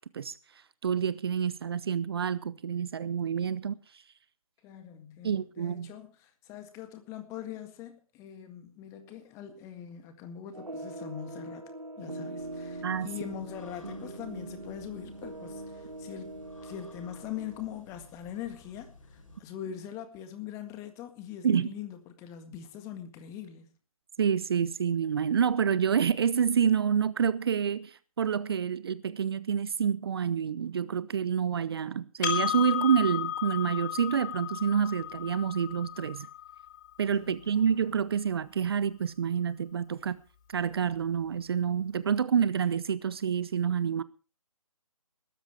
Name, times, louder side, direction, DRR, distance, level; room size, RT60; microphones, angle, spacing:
voice 1, 0.8-4.0 5.2-5.9 12.8-13.1 21.4-21.7 24.2-36.3 37.0-40.2 40.5-44.0, right 7 dB, 45° right, 0.8 m, -28 dB
voice 2, 4.6-11.7 12.0-23.7 37.2-38.0, left 9 dB, 15° left, 1.8 m, -42 dB
sound 1, 10.5-17.8, right 2 dB, 85° right, 1.5 m, -42 dB
sound 2, 12.4-19.4, left 2 dB, 65° left, 7.9 m, -54 dB
Percussion, 32.2-37.0, left 10 dB, 35° left, 3.5 m, -34 dB
20.5 x 13.0 x 3.5 m
figure-of-eight pair, 140°, 18 cm